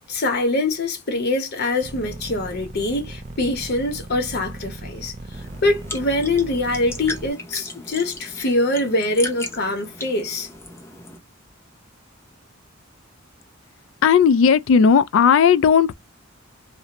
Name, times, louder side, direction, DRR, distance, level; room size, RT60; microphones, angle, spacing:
voice 1, 0.1-5.1 5.6-10.5, left 2 dB, 50° left, 0.8 m, -23 dB
sound 1, 1.8-7.3, right 2 dB, 35° right, 0.4 m, -36 dB
sound 2, 5.3-11.2, left 2 dB, 10° left, 0.6 m, -36 dB
voice 2, 14.0-15.9, left 6 dB, 70° left, 0.3 m, -15 dB
2.5 x 2.0 x 2.8 m
head